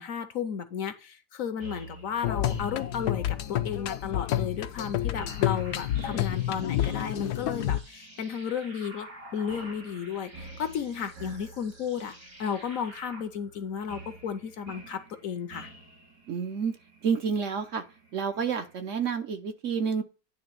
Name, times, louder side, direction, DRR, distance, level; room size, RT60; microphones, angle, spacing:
voice 1, 0.0-15.7, left 7 dB, 60° left, 10 dB, 1.1 m, -34 dB
sound 1, 1.6-18.9, right 3 dB, 75° right, 3.8 m, -50 dB
sound 2, 2.2-7.8, left 12 dB, 80° left, 1.2 m, -29 dB
sound 3, 5.1-13.2, right 1 dB, 90° right, 5.5 m, -49 dB
voice 2, 16.3-16.7 17.0-17.8 18.1-20.0, right 6 dB, 55° right, 8 dB, 1.0 m, -29 dB
9.8 x 3.4 x 6.6 m, 0.33 s
omnidirectional pair, 1.7 m